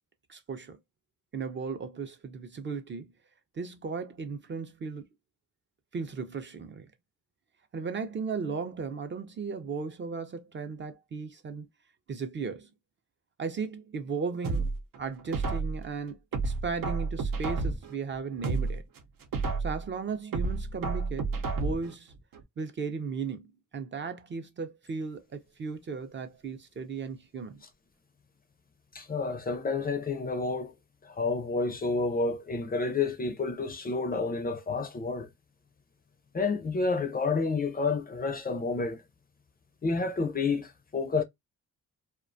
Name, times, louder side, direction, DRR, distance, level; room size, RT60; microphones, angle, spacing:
voice 1, 0.3-0.8 1.3-3.1 3.5-5.1 5.9-6.9 7.7-11.7 12.1-12.7 13.4-16.2 16.4-18.8 19.6-22.1 22.6-23.5 23.7-27.6, right 5 dB, 35° right, 0.4 m, -36 dB
sound 1, 14.4-15.9 16.3-17.9 18.3-19.9 20.3-21.9 22.3-22.4, right 4 dB, 90° right, 0.7 m, -31 dB
voice 2, 28.9-30.8 31.0-35.3 36.3-39.0 39.8-41.2, left 4 dB, 30° left, 0.4 m, -29 dB
2.3 x 2.2 x 2.5 m
cardioid pair, 120°, 33 cm